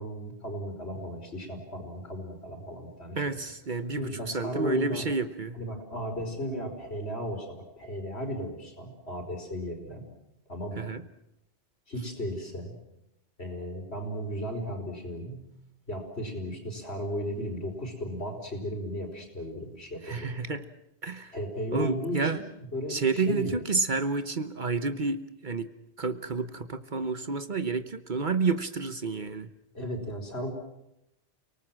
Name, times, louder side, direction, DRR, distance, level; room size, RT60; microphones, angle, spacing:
voice 1, 0.0-3.2 4.0-5.1 5.5-10.0 10.5-10.9 11.9-12.7 13.4-15.5 15.9-20.3 21.3-22.4 22.7-23.6 29.7-30.5, equal, 65° left, 3 dB, 5.1 m, -35 dB
voice 2, 3.2-5.6 10.8-11.0 20.0-20.7 21.0-21.3 21.7-22.4 22.9-25.7 26.0-29.5, right 4 dB, 45° right, 11 dB, 1.1 m, -30 dB
30.0 x 19.0 x 7.5 m, 0.86 s
omnidirectional pair, 1.1 m